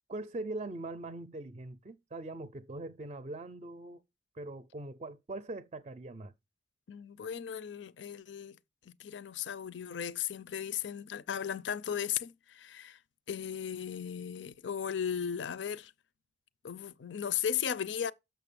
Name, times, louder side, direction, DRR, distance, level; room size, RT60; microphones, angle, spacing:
voice 1, 0.1-4.0 4.3-6.3, right 2 dB, 35° right, 0.4 m, -41 dB
voice 2, 6.9-8.6 8.9-13.0 13.3-15.9 16.6-18.1, left 8 dB, 85° left, 0.5 m, -36 dB
6.6 x 5.8 x 6.8 m
head